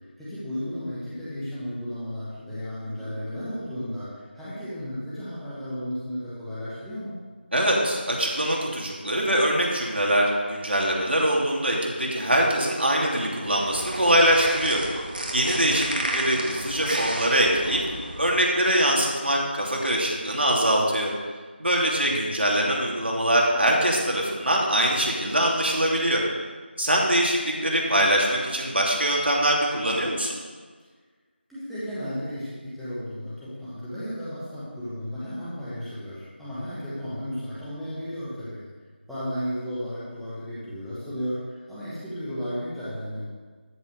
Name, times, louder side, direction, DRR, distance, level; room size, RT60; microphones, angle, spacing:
voice 1, 0.2-7.2 15.5-15.9 22.0-22.2 31.5-38.6 39.1-43.2, equal, ahead, -13 dB, 1.1 m, -34 dB
voice 2, 7.5-14.8 15.3-15.9 16.1-17.8 18.2-21.1 21.6-26.2 26.8-30.4, right 1 dB, 70° right, -2 dB, 2.8 m, -23 dB
sound 1, 13.4-18.4, right 1 dB, 55° right, 1.9 m, -32 dB
13.0 x 5.4 x 6.5 m, 1.5 s
figure-of-eight pair, 170°, 6 cm